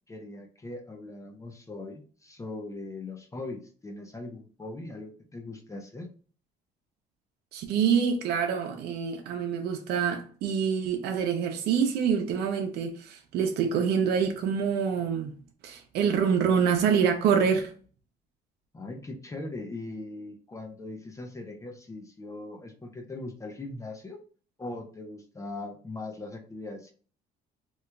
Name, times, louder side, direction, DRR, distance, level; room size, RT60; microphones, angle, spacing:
voice 1, 0.1-6.1 18.7-24.2 24.6-26.9, left 2 dB, 20° left, 0.6 m, -40 dB
voice 2, 7.5-15.3 15.6-17.7, right 7 dB, 75° right, 0.6 m, -26 dB
3.1 x 2.3 x 3.3 m
cardioid pair, 110°, 17 cm